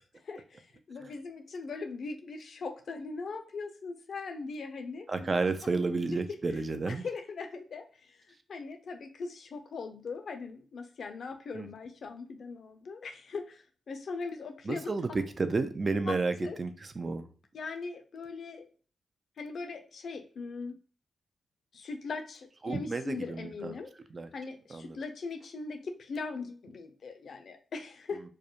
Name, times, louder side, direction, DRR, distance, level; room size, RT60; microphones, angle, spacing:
voice 1, 0.2-5.3 5.6-6.2 6.9-8.2 8.5-14.9 16.1-16.6 17.5-18.7 19.4-20.8 21.7-23.9 24.3-28.2, left 4 dB, 70° left, 0.5 m, -40 dB
voice 2, 5.1-7.0 11.5-11.7 14.6-17.3 22.6-23.7 24.1-24.3 24.7-25.0, right 3 dB, 45° right, 0.4 m, -31 dB
2.3 x 2.1 x 2.8 m
cardioid pair, 55°, 0 cm